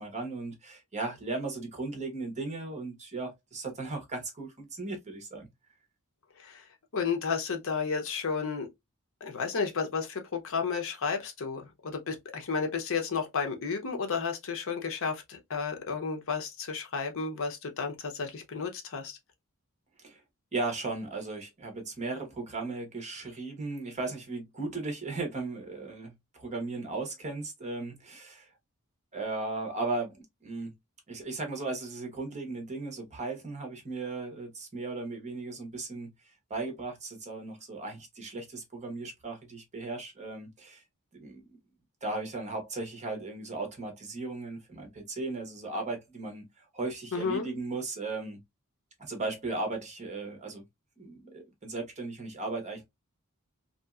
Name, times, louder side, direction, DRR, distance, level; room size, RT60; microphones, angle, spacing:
voice 1, 0.0-5.5 20.0-20.2 20.5-28.5 29.1-30.7 31.1-36.1 36.5-40.8 41.1-41.6 42.0-46.4 46.7-48.4 49.0-50.6 51.0-52.9, right 3 dB, 30° right, 1.0 m, -36 dB
voice 2, 6.9-8.7 9.2-19.2 47.1-47.5, left 5 dB, 65° left, 0.7 m, -32 dB
2.8 x 2.7 x 2.3 m
head